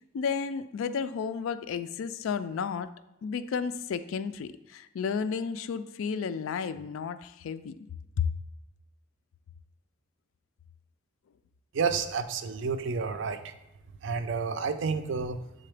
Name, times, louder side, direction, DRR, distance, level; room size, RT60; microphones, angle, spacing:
voice 1, 0.1-2.9 3.2-7.9 8.2-8.3, left 6 dB, 75° left, 12 dB, 0.3 m, -32 dB
voice 2, 11.7-13.5 14.0-15.4, right 5 dB, 60° right, 9 dB, 0.4 m, -30 dB
7.6 x 3.7 x 3.3 m, 0.93 s
head